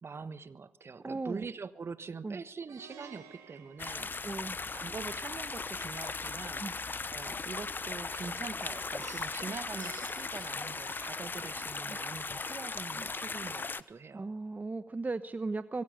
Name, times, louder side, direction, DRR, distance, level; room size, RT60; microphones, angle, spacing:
voice 1, 0.0-4.4 4.7-6.6 7.1-14.3, right 5 dB, 45° right, 13 dB, 1.3 m, -44 dB
voice 2, 1.0-1.4 2.2-2.4 4.2-4.6 6.6-6.7 11.9-12.0 14.1-15.8, right 3 dB, 30° right, 12 dB, 1.0 m, -36 dB
Plucked string instrument, 2.7-4.8 9.0-11.6, right 7 dB, 80° right, 4.3 m, -53 dB
sound 1, 3.8-13.8, left 4 dB, 35° left, 1.0 m, -38 dB
24.5 x 17.5 x 6.7 m, 0.93 s
hypercardioid pair, 45°, 6 cm